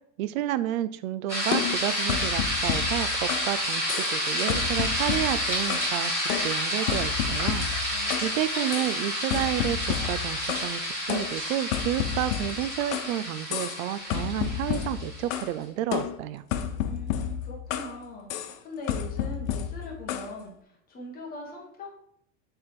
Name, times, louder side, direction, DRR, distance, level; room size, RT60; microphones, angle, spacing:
voice 1, 0.2-6.1 6.4-7.7 8.2-16.4, right 12 dB, 80° right, 14 dB, 0.5 m, -30 dB
sound 1, 1.3-15.4, equal, 5° right, 2.2 m, -30 dB
sound 2, 1.5-3.6 3.9-4.2 4.5-6.0 6.3-8.3 8.7-8.9 9.3-10.7 11.1-13.1 13.5-13.8 14.1-15.5 15.9-18.0 18.3-18.6 18.9-20.3, left 9 dB, 70° left, 0.7 m, -31 dB
voice 2, 7.9-8.6 16.8-20.5 20.9-21.9, left 1 dB, 20° left, -1 dB, 1.3 m, -41 dB
6.8 x 3.5 x 4.4 m, 0.71 s
supercardioid pair, 165°, 41 cm